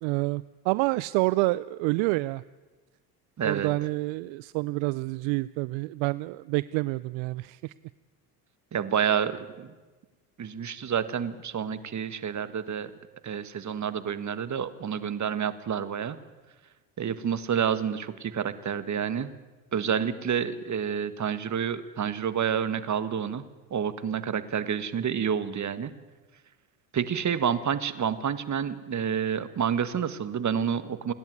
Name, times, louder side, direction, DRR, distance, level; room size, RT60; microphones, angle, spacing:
voice 1, 0.0-2.4 3.4-7.7, right 21 dB, 65° right, 19 dB, 0.6 m, -28 dB
voice 2, 3.4-3.7 8.7-9.7 10.4-12.9 13.2-16.2 17.0-19.3 19.7-23.4 23.7-25.9 26.9-31.1, right 8 dB, 35° right, 13 dB, 1.7 m, -29 dB
30.0 x 10.5 x 9.6 m, 1.3 s
hypercardioid pair, 75°, 49 cm